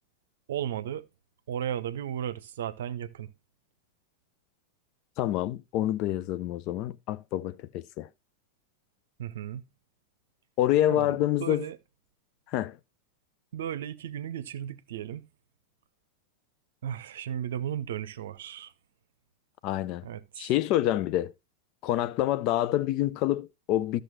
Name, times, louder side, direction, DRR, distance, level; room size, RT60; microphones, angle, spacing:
voice 1, 0.5-1.0 1.5-3.3 9.2-9.7 10.9-11.8 13.5-15.3 16.8-18.7 20.0-20.5, right 10 dB, 60° right, 0.7 m, -35 dB
voice 2, 5.2-8.1 10.6-11.7 12.5-12.8 19.6-20.0 20.4-21.3 21.8-24.0, left 13 dB, 40° left, 0.6 m, -27 dB
13.5 x 6.7 x 3.1 m
figure-of-eight pair, 90°, 0 cm